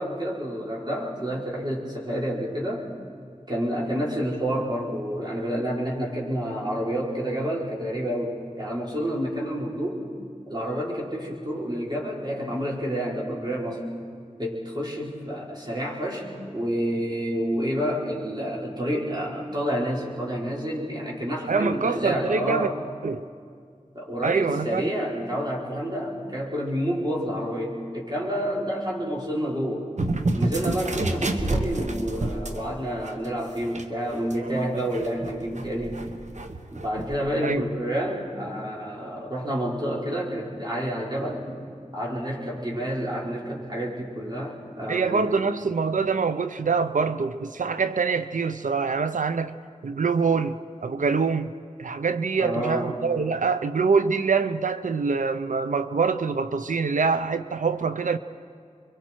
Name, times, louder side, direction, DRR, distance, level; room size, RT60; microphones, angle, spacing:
voice 1, 0.0-2.9 3.5-10.0 10.5-13.8 14.4-22.7 23.9-29.9 30.3-36.0 36.7-41.4 41.9-45.3 52.4-53.0, equal, 35° right, -5 dB, 4.7 m, -29 dB
voice 2, 21.5-22.7 23.0-23.2 24.2-24.9 37.4-37.6 44.9-49.6 49.8-51.5 51.8-58.2, right 5 dB, 90° right, 11 dB, 0.6 m, -25 dB
sound 1, 30.0-32.7 33.0-33.2 33.6-37.2, right 2 dB, 65° right, 1.2 m, -29 dB
28.5 x 23.0 x 4.5 m, 2.2 s
wide cardioid pair, 50°, 13 cm